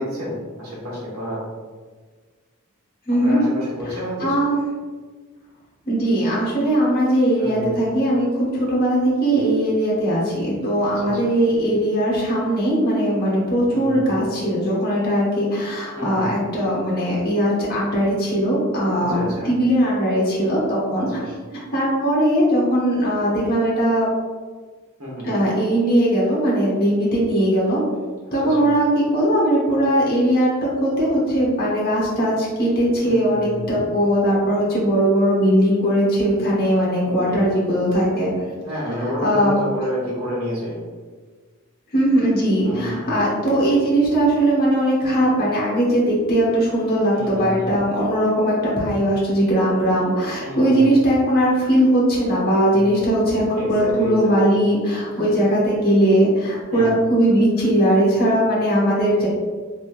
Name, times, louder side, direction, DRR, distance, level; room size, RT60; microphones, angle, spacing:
voice 1, 0.0-1.4 3.2-4.4 7.4-7.8 10.8-11.3 13.7-14.2 15.9-16.3 18.9-19.5 21.0-21.3 25.0-25.3 28.2-28.7 33.0-33.8 37.0-37.4 38.6-40.8 42.6-43.2 47.1-47.7 50.4-50.9 52.7-52.9 53.6-54.5 55.2-55.4 56.7-56.9, equal, 75° right, -7 dB, 1.2 m, -30 dB
voice 2, 3.1-3.4 4.2-4.6 5.9-21.1 21.5-24.1 25.2-27.8 28.3-38.3 39.2-39.6 41.9-59.3, right 1 dB, 45° left, -6 dB, 1.0 m, -19 dB
3.0 x 2.7 x 2.5 m, 1.5 s
head